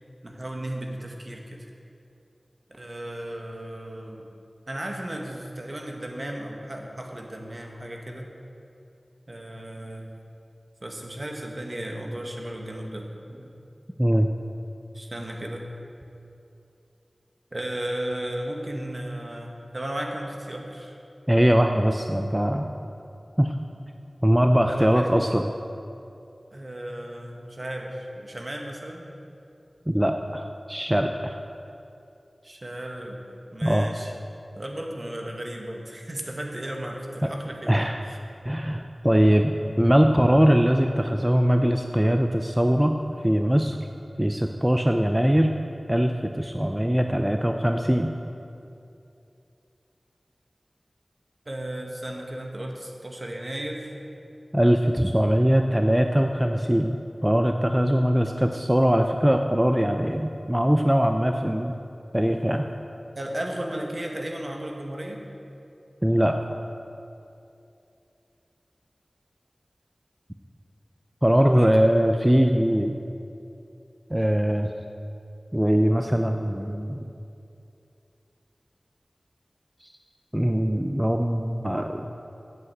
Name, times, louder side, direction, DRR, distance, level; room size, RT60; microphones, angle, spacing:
voice 1, 0.2-1.7 2.7-4.2 4.7-8.3 9.3-10.1 10.8-13.5 14.9-15.7 17.5-21.0 24.7-25.1 26.5-29.2 32.4-33.2 33.5-34.1 34.5-37.7 38.0-38.2 51.4-53.9 63.1-65.2 71.4-71.7, right 1 dB, 45° right, 1 dB, 1.5 m, -35 dB
voice 2, 14.0-14.3 21.3-22.7 23.4-23.5 24.2-25.5 29.9-31.4 33.6-33.9 37.2-37.3 37.7-38.0 38.5-43.0 43.2-43.8 44.2-45.5 45.9-48.1 54.5-61.8 62.1-62.7 66.0-66.3 71.2-73.0 74.1-74.7 75.5-77.0 80.3-82.1, equal, 10° right, 5 dB, 0.5 m, -21 dB
8.3 x 8.0 x 7.9 m, 2.7 s
wide cardioid pair, 40°, 0 cm